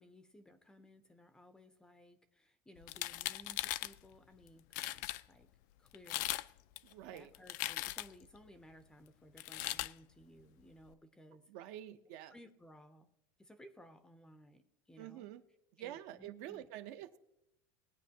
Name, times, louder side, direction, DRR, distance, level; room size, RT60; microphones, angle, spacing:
voice 1, 0.0-5.5 5.8-6.4 7.1-11.5 11.9-12.0 12.3-13.1 13.4-15.3 15.8-16.7, equal, 5° left, 10 dB, 0.5 m, -59 dB
sound 1, 2.8-3.9 4.5-4.6 4.7-5.2 5.9-6.5 6.8-8.2 9.4-9.9, left 17 dB, 65° left, 0.4 m, -39 dB
voice 2, 6.8-7.3 11.5-12.4 15.0-15.4 15.8-17.2, right 13 dB, 60° right, 10 dB, 0.7 m, -47 dB
19.5 x 9.2 x 2.8 m, 0.84 s
cardioid pair, 170°, 11 cm